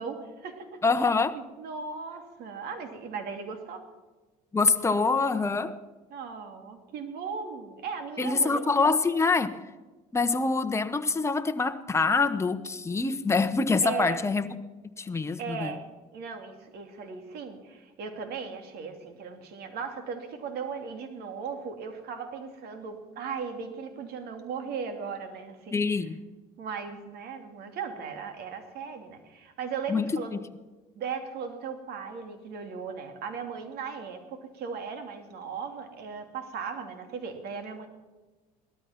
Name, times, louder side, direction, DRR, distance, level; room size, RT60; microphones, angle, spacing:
voice 1, 0.0-1.1 1.6-3.8 6.1-9.2 13.8-14.2 15.4-26.1 26.6-30.3 31.0-37.9, right 5 dB, 65° right, 6 dB, 2.8 m, -37 dB
voice 2, 0.8-1.4 4.5-5.8 8.2-9.5 10.1-14.5 15.0-15.7 25.7-26.2 29.9-30.1, left 4 dB, 15° left, 8 dB, 1.1 m, -25 dB
17.5 x 13.0 x 5.9 m, 1.2 s
supercardioid pair, 85°, 18 cm